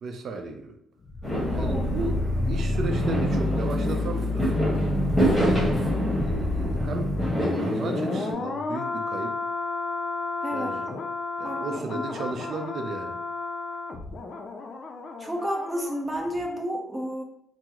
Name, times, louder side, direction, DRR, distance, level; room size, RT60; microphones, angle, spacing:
voice 1, 0.0-0.7 1.5-2.1 2.4-4.9 5.4-5.7 6.2-7.1 7.6-9.3 10.5-10.9 11.4-13.2, right 3 dB, 60° right, 5 dB, 0.5 m, -34 dB
sound 1, 1.0-16.0 16.3-16.5, left 2 dB, 50° left, 0.4 m, -30 dB
Fireworks, 1.2-8.3, equal, 15° left, 1.4 m, -28 dB
voice 2, 1.4-1.9 10.4-10.8 11.4-12.0 15.2-17.2, equal, 15° right, 1 dB, 0.7 m, -31 dB
3.5 x 2.0 x 2.9 m, 0.73 s
cardioid pair, 90°, 0 cm